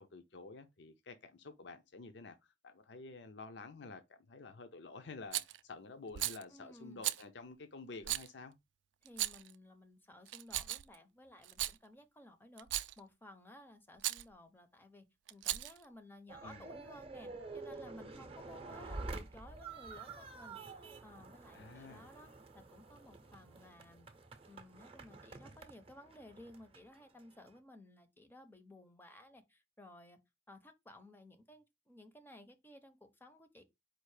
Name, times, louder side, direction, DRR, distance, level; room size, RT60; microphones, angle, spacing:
voice 1, 0.0-8.5 16.4-16.7 21.5-22.1, left 3 dB, 70° left, 0.6 m, -50 dB
Rattle, 5.3-5.6 6.1-6.4 7.0-7.2 8.0-8.3 9.1-9.5 10.3-11.0 11.4-11.8 12.6-13.0 14.0-14.2 15.3-15.8, right 15 dB, 80° right, 0.3 m, -37 dB
voice 2, 6.5-7.0 9.0-24.1 24.5-30.2 30.5-33.6, left 1 dB, 10° left, 0.6 m, -57 dB
sound 1, 16.3-27.6, right 3 dB, 30° right, 0.6 m, -49 dB
4.6 x 2.4 x 4.7 m
head